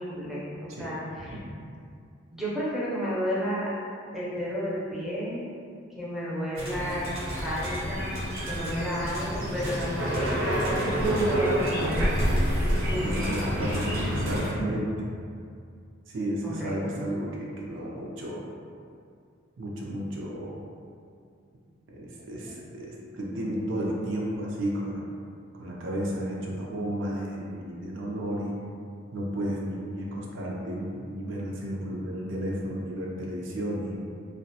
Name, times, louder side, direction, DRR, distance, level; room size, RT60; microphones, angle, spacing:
voice 1, 0.0-1.4 2.3-3.7 4.1-5.4 6.0-8.1 8.5-12.2 12.9-13.6 16.4-17.0, equal, ahead, -8 dB, 0.4 m, -32 dB
sound 1, 6.5-14.5, equal, 85° right, 0.8 m, -28 dB
voice 2, 13.0-14.9 16.1-18.4 19.6-20.6 21.9-25.0 25.6-28.6 29.1-34.0, right 1 dB, 65° right, -3 dB, 0.4 m, -32 dB
2.3 x 2.1 x 2.7 m, 2.3 s
head